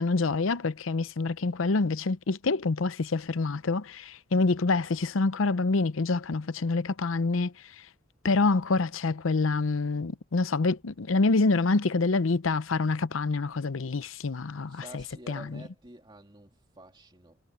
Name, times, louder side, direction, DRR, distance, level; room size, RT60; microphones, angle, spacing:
voice 1, 0.0-7.5 8.2-14.8 15.3-15.6, left 3 dB, 90° left, 0.7 m, -26 dB
voice 2, 14.7-17.4, right 1 dB, 25° right, 2.7 m, -49 dB
head